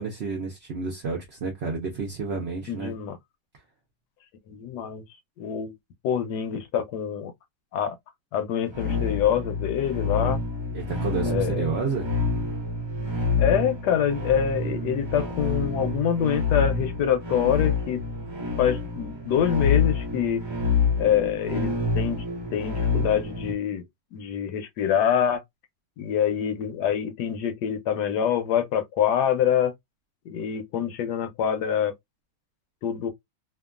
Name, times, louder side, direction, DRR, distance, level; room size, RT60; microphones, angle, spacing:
voice 1, 0.0-2.9 10.7-12.1, right 4 dB, 60° right, 0.6 m, -30 dB
voice 2, 2.7-3.2 4.5-5.0 5.4-5.8 6.0-7.3 7.7-8.0 8.3-10.4 11.3-11.7 13.4-18.0 18.6-20.4 21.0-22.2 22.5-23.8 24.1-25.4 26.0-29.7 30.3-31.9 32.8-33.1, left 9 dB, 75° left, 1.1 m, -25 dB
sound 1, 8.7-23.5, left 4 dB, 25° right, 0.6 m, -27 dB
2.9 x 2.3 x 2.3 m
omnidirectional pair, 1.9 m